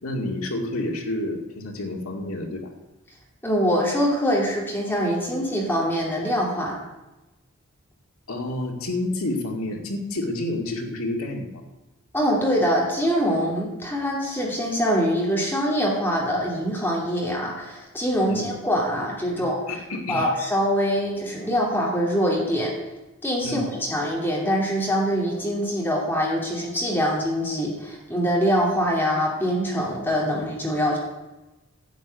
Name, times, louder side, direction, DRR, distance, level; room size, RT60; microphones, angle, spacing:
voice 1, 0.0-2.7 8.3-11.6 18.3-18.5 19.3-20.3 23.4-23.7, left 1 dB, 75° left, 2 dB, 2.2 m, -29 dB
voice 2, 3.4-6.8 12.1-19.6 20.1-22.7 23.2-31.0, equal, 10° left, -3 dB, 2.6 m, -24 dB
11.5 x 7.1 x 9.1 m, 1.0 s
head